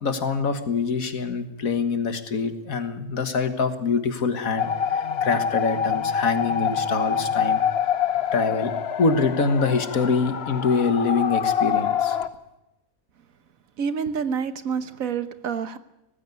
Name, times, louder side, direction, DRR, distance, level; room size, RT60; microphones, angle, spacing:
voice 1, 0.0-7.6 8.3-8.7 9.0-12.2, left 4 dB, 70° left, 1.9 m, -25 dB
sound 1, 4.6-12.3, left 8 dB, 50° left, 1.0 m, -25 dB
voice 2, 13.8-15.8, right 6 dB, 70° right, 1.4 m, -28 dB
18.5 x 15.5 x 9.5 m
omnidirectional pair, 1.5 m